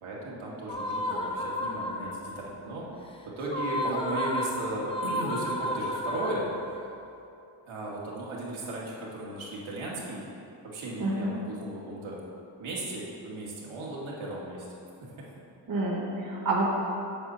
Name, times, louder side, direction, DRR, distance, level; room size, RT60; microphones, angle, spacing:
voice 1, 0.0-2.8 3.4-6.5 7.7-10.2 10.6-12.2 12.6-14.7, right 2 dB, 90° right, -5 dB, 1.9 m, -36 dB
sound 1, 0.7-2.4 3.4-6.8, left 1 dB, 10° left, 0.5 m, -32 dB
voice 2, 11.0-11.4 15.7-16.7, right 2 dB, 45° right, -3 dB, 1.3 m, -28 dB
8.2 x 4.3 x 6.7 m, 2.7 s
wide cardioid pair, 150°, 46 cm